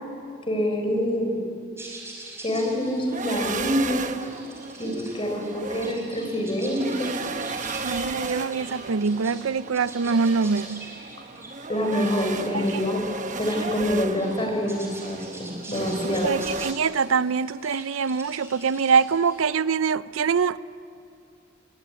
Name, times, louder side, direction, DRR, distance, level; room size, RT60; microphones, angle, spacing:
voice 1, 0.5-1.5 2.4-4.1 4.8-7.1 11.7-13.0 13.4-16.3, equal, 25° left, 4.7 m, -26 dB
sound 1, 1.8-19.5, right 2 dB, 15° right, 5.5 m, -44 dB
sound 2, 3.1-16.7, right 4 dB, 40° right, 1.1 m, -35 dB
voice 2, 7.8-10.9 12.5-12.8 16.2-20.6, right 5 dB, 80° right, 0.6 m, -24 dB
24.0 x 23.0 x 9.8 m
head